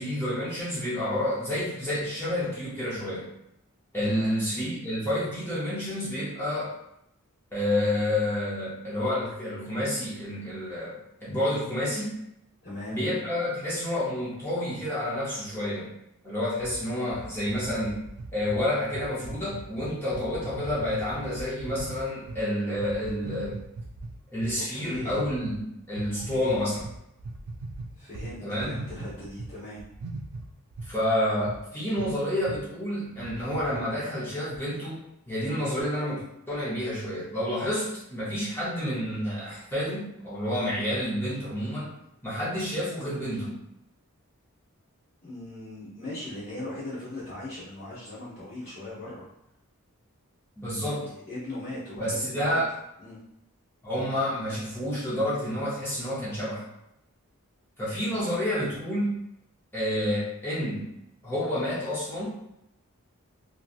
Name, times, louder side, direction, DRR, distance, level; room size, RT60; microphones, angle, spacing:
voice 1, 0.0-3.3 3.9-6.7 7.5-12.2 12.9-15.9 16.2-18.0 18.3-23.6 24.3-26.8 28.4-28.7 30.9-35.0 35.3-41.9 42.2-43.6 50.6-51.0 52.0-52.7 53.8-56.6 57.8-59.1 59.7-60.9 61.2-62.3, left 1 dB, 10° left, -9 dB, 0.7 m, -29 dB
voice 2, 4.0-4.3 12.6-13.0 24.7-25.2 26.1-26.7 27.9-29.8 45.2-49.3 50.8-52.6 53.0-53.2, left 1 dB, 50° left, -13 dB, 1.1 m, -39 dB
sound 1, 16.6-22.4 22.7-24.5 24.9-25.6 26.0-29.5 29.8-31.0 31.5-31.6 32.0-32.2 32.5-32.6 33.0-33.8, right 2 dB, 80° right, 0.4 m, -39 dB
2.9 x 2.6 x 2.4 m, 0.81 s
head